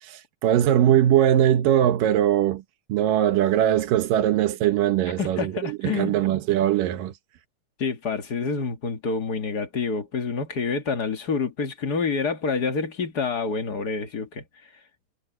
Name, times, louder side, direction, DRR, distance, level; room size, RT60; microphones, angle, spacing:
voice 1, 0.0-2.6 2.9-7.1, right 11 dB, 90° right, 2.9 m, -21 dB
voice 2, 5.2-6.2 7.8-14.4, left 5 dB, 40° left, 1.8 m, -27 dB
omnidirectional pair, 3.8 m